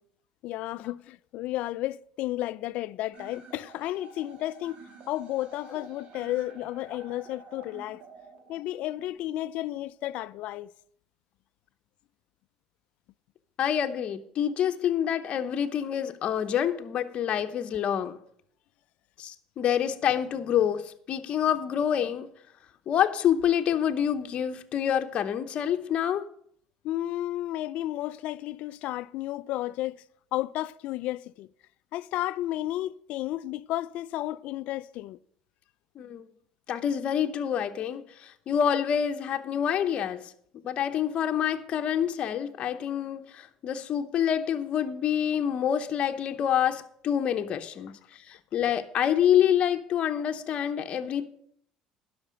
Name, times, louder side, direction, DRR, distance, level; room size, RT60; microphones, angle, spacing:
voice 1, 0.4-4.8 5.1-8.0 8.5-10.7 26.8-30.0 30.3-31.5 31.9-35.2, left 15 dB, 70° left, 0.4 m, -32 dB
sound 1, 3.1-9.1, right 4 dB, 55° right, 2.7 m, -50 dB
voice 2, 13.6-18.2 19.2-22.3 22.9-26.3 36.0-36.3 36.7-40.3 40.6-47.9 48.3-51.3, left 9 dB, 50° left, 0.8 m, -27 dB
11.5 x 5.9 x 7.6 m
supercardioid pair, 100°, 2 cm